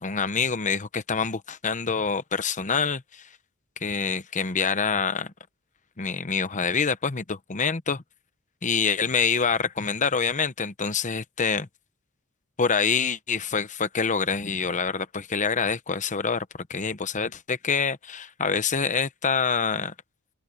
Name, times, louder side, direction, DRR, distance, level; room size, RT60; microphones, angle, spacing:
voice 1, 0.0-3.3 3.8-5.3 6.0-8.0 8.6-11.6 12.6-19.9, left 5 dB, 35° left, 1.0 m, -26 dB
open air
head